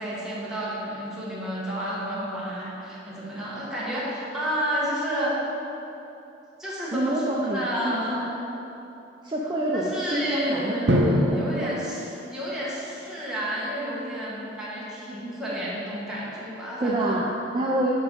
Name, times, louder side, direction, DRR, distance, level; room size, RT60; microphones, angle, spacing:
voice 1, 0.0-5.4 6.6-7.2 7.5-8.2 9.7-17.2, equal, 5° right, -9 dB, 1.7 m, -31 dB
voice 2, 6.9-8.4 9.2-11.8 16.8-17.9, right 1 dB, 25° right, -4 dB, 0.5 m, -27 dB
Drum, 10.9-12.8, equal, 80° right, 0.8 m, -25 dB
9.3 x 3.6 x 5.3 m, 2.9 s
head